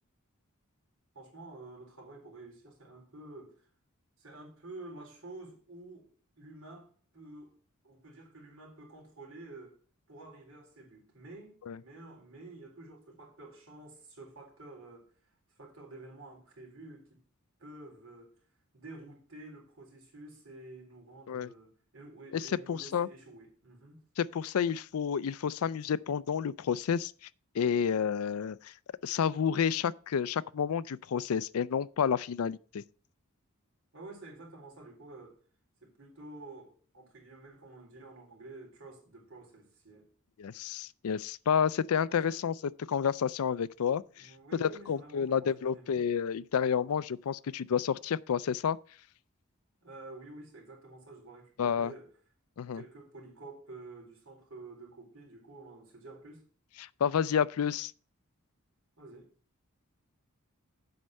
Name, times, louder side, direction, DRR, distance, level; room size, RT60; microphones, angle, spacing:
voice 1, 1.1-3.7 4.2-6.1 6.4-7.6 7.8-9.8 10.1-15.1 15.6-17.2 17.6-18.4 18.7-24.0 33.9-35.4 35.8-40.1 42.1-42.4 44.2-46.0 49.8-52.1 52.7-56.4 59.0-59.3, right 2 dB, 70° right, 3.9 m, -50 dB
voice 2, 22.3-23.1 24.2-27.1 27.5-28.7 29.0-32.8 40.4-42.5 42.9-48.8 51.6-51.9 52.6-52.8 56.8-57.9, left 7 dB, 80° left, 0.4 m, -30 dB
7.9 x 5.3 x 7.5 m
head